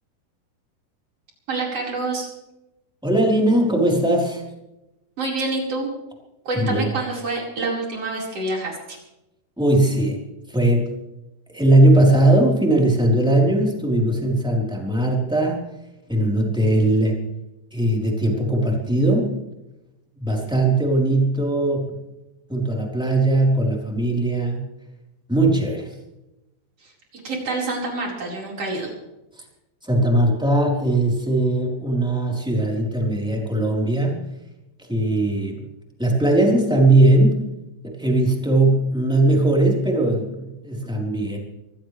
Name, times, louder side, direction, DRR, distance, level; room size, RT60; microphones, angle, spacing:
voice 1, 1.5-2.3 5.2-5.9 6.5-9.0 26.8-26.9 27.2-28.9, right 2 dB, 35° right, -2 dB, 5.6 m, -27 dB
voice 2, 3.0-4.4 6.5-6.9 9.6-10.2 10.5-10.8 11.5-15.6 16.1-17.2 17.7-19.3 20.2-22.0 22.5-24.6 25.3-25.9 29.8-34.2 34.9-35.6 36.0-37.4 37.8-41.4, right 1 dB, ahead, -1 dB, 3.4 m, -19 dB
25.0 x 16.0 x 3.4 m, 0.93 s
omnidirectional pair, 4.7 m